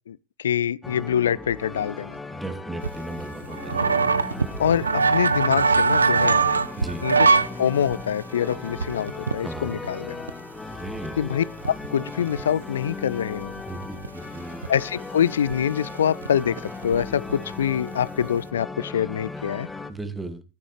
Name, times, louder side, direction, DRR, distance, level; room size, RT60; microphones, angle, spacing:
voice 1, 0.1-2.2 4.6-6.4 7.0-7.3 7.6-10.2 11.2-13.5 14.7-19.7, left 9 dB, 70° left, 0.5 m, -25 dB
sound 1, 0.8-19.9, left 3 dB, 10° left, 1.5 m, -37 dB
voice 2, 2.3-3.9 6.8-7.1 9.4-9.7 10.7-11.1 13.7-14.6 19.9-20.4, right 2 dB, 10° right, 2.2 m, -36 dB
sound 2, 2.8-7.5 7.9-8.0 8.5-9.9 10.3-10.4 10.9-11.0 11.2-12.7 13.2-13.3 13.5-14.1 14.6-14.8 15.5-15.6 15.9-17.0 17.3-17.6 17.9-18.4, right 4 dB, 80° right, 0.6 m, -22 dB
13.0 x 12.0 x 3.3 m
figure-of-eight pair, 80°, 0 cm